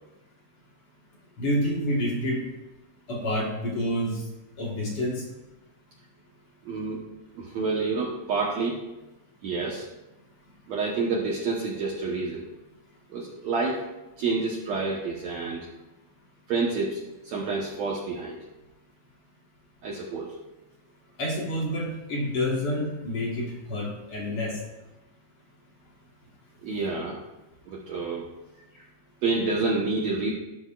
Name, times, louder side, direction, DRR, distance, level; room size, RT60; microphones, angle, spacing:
voice 1, 1.4-2.4 3.1-4.2 4.6-5.2 21.2-24.6, equal, 55° left, -2 dB, 1.5 m, -28 dB
voice 2, 6.6-7.0 7.3-8.8 9.4-9.9 10.7-12.4 13.1-13.8 14.2-15.7 16.5-18.4 19.8-20.3 26.6-27.2 27.6-28.3 28.7-28.8 29.2-30.3, right 3 dB, 75° right, -4 dB, 1.6 m, -28 dB
13.0 x 12.5 x 2.5 m, 1.0 s
omnidirectional pair, 5.1 m